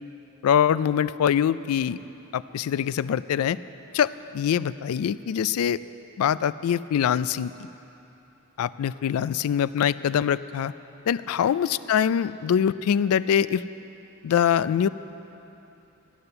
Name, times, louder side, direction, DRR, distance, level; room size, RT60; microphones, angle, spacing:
voice 1, 0.4-2.0 2.3-3.6 3.9-5.8 6.2-7.7 8.6-10.7 11.1-13.6 14.2-14.9, left 8 dB, 85° left, 17 dB, 0.3 m, -24 dB
12.5 x 9.7 x 6.7 m, 3.0 s
head